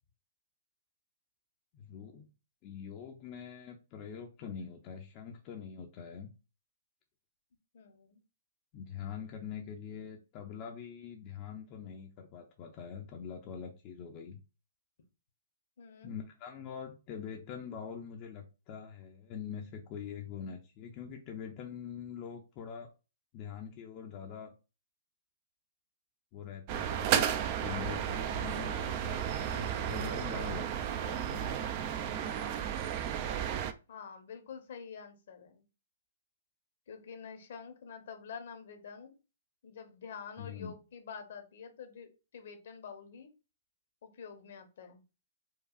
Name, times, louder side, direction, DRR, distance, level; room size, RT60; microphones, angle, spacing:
voice 1, 1.7-2.3 2.6-6.3 8.7-14.4 16.0-22.9 23.3-24.5 26.3-27.1 27.6-31.4 40.4-40.7, left 7 dB, 35° left, 1 dB, 0.6 m, -44 dB
voice 2, 7.7-8.2 15.8-16.1 33.9-35.6 36.9-39.1 39.6-43.3 44.0-45.0, left 6 dB, 60° left, 7 dB, 0.9 m, -47 dB
sound 1, 26.7-33.7, right 9 dB, 40° right, 0.4 m, -33 dB
4.6 x 2.3 x 2.4 m, 0.31 s
figure-of-eight pair, 120°, 0 cm